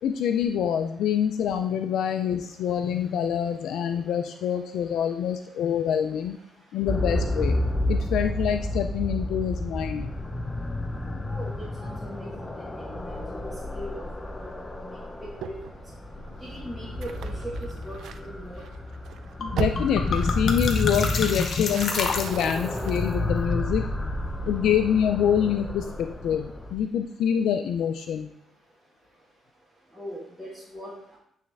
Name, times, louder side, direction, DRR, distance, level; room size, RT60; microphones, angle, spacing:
voice 1, 0.0-6.4 6.7-7.6 7.9-10.1 19.5-23.8 24.4-28.3, left 8 dB, 80° left, 7 dB, 0.3 m, -26 dB
sound 1, 6.9-26.7, left 1 dB, 15° left, 0.6 m, -31 dB
voice 2, 11.3-14.1 14.4-14.5 14.8-15.6 16.4-17.5 17.8-18.6 29.9-31.2, equal, ahead, -7 dB, 1.5 m, -40 dB
sound 2, 15.4-23.8, right 7 dB, 75° right, 0.4 m, -39 dB
sound 3, 19.4-19.5 19.8-22.8, left 4 dB, 50° left, 0.7 m, -29 dB
9.1 x 3.3 x 3.4 m, 0.73 s
cardioid pair, 90°, 0 cm